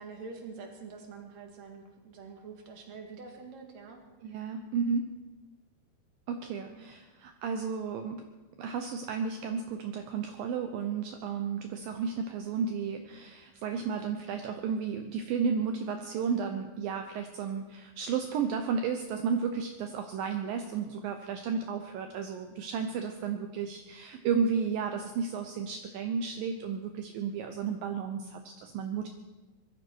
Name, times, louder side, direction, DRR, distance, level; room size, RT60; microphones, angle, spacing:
voice 1, 0.0-4.0 4.4-4.5 6.5-6.9, right 4 dB, 50° right, 3 dB, 2.7 m, -46 dB
voice 2, 4.2-5.1 6.3-8.2 8.6-29.1, right 6 dB, 75° right, 5 dB, 2.2 m, -33 dB
21.5 x 13.5 x 4.6 m, 1.1 s
omnidirectional pair, 4.8 m